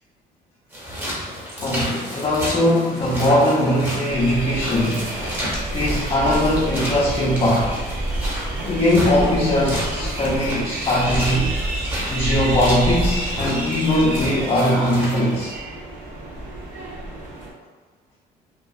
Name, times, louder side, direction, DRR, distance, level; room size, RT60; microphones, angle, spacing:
sound 1, 0.7-15.5, equal, 10° right, 0.9 m, -32 dB
voice 1, 1.6-5.2 5.7-7.7 8.6-11.5 12.1-15.5, left 1 dB, 35° left, -7 dB, 0.5 m, -20 dB
sound 2, 4.1-17.5, right 1 dB, 55° right, 0.7 m, -28 dB
2.7 x 2.3 x 2.3 m, 1.4 s
cardioid pair, 110°, 17 cm